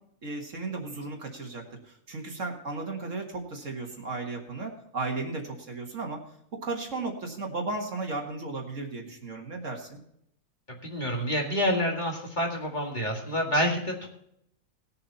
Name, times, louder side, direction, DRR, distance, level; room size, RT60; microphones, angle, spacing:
voice 1, 0.2-6.2 6.5-10.0, right 3 dB, 55° right, 1 dB, 2.0 m, -35 dB
voice 2, 10.7-14.1, equal, 30° left, -1 dB, 2.2 m, -28 dB
19.0 x 7.0 x 4.1 m, 0.73 s
omnidirectional pair, 1.6 m